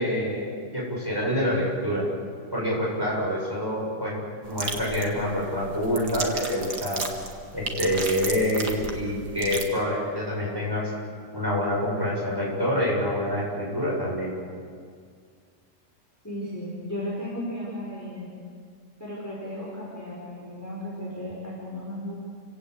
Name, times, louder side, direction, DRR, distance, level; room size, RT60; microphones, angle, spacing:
voice 1, 0.0-2.1 2.5-4.2 4.5-7.1 7.5-10.8 11.3-14.3, equal, 10° right, -4 dB, 7.4 m, -26 dB
sound 1, 4.4-9.6, right 3 dB, 65° right, 2.5 m, -34 dB
voice 2, 16.2-18.3 19.0-22.1, left 1 dB, 10° left, -5 dB, 5.0 m, -35 dB
29.5 x 17.0 x 8.3 m, 2.1 s
omnidirectional pair, 1.9 m